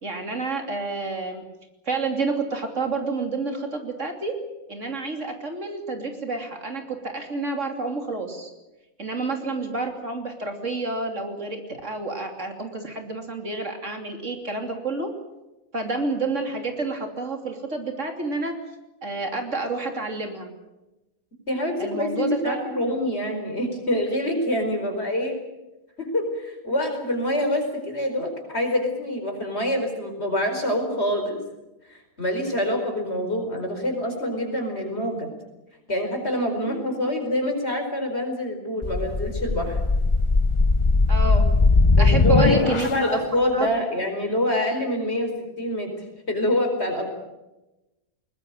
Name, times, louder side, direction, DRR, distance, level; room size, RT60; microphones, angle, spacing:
voice 1, 0.0-1.4 1.9-4.3 4.7-8.5 9.0-15.1 15.7-18.5 19.0-20.5 21.8-23.0 36.6-37.0 41.1-41.5 42.0-43.2 43.5-43.7, right 3 dB, 60° right, 4 dB, 3.3 m, -29 dB
voice 2, 21.5-25.4 26.0-31.4 31.9-35.3 35.9-39.8 42.0-45.9 46.3-47.1, left 1 dB, 50° left, 4 dB, 5.3 m, -26 dB
sound 1, 38.8-43.1, left 3 dB, 25° left, 0.8 m, -19 dB
21.5 x 20.0 x 9.0 m, 1.0 s
omnidirectional pair, 1.4 m